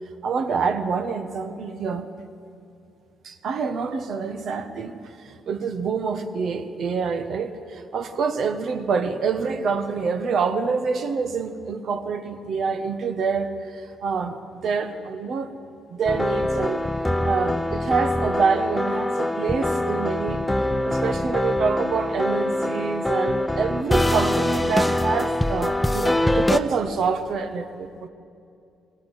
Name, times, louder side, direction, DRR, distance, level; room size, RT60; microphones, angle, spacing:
voice 1, 0.2-2.1 3.2-15.5 15.9-16.8 17.2-20.4 20.8-28.1, right 5 dB, 65° right, 9 dB, 1.4 m, -26 dB
sound 1, 16.1-26.6, left 1 dB, 10° left, 0.8 m, -24 dB
22.0 x 18.0 x 8.2 m, 2.5 s
cardioid pair, 90°, 0 cm